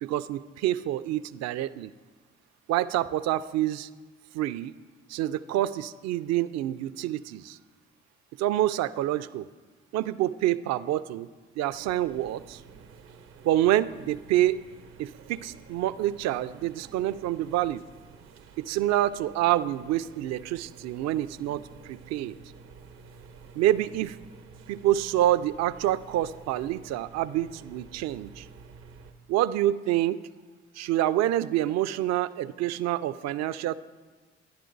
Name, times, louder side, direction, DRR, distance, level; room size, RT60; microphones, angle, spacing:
voice 1, 0.0-1.9 2.7-3.9 4.3-4.7 5.1-7.6 8.4-9.5 9.9-11.3 11.6-12.6 13.4-14.6 15.0-17.8 18.6-22.4 23.6-24.2 24.7-28.5 29.3-30.2 30.7-33.8, right 13 dB, 60° right, 14 dB, 0.4 m, -27 dB
sound 1, 11.7-29.1, right 5 dB, 85° right, 0.8 m, -50 dB
11.0 x 10.5 x 3.9 m, 1.3 s
hypercardioid pair, 50°, 29 cm